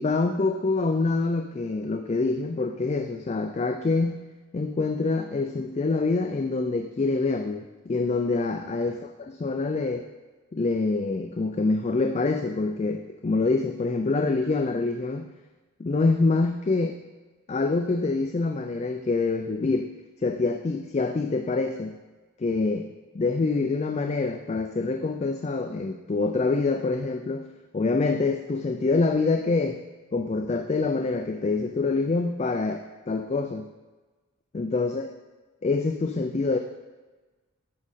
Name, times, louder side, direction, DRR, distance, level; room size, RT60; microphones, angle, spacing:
voice 1, 0.0-4.2 4.5-10.0 10.5-15.3 15.8-17.0 17.5-19.9 20.2-22.0 22.4-22.9 23.1-27.5 27.7-29.8 30.1-33.7 34.5-35.1 35.6-36.6, left 3 dB, 30° left, 5 dB, 0.3 m, -26 dB
8.7 x 6.1 x 4.2 m, 1.2 s
head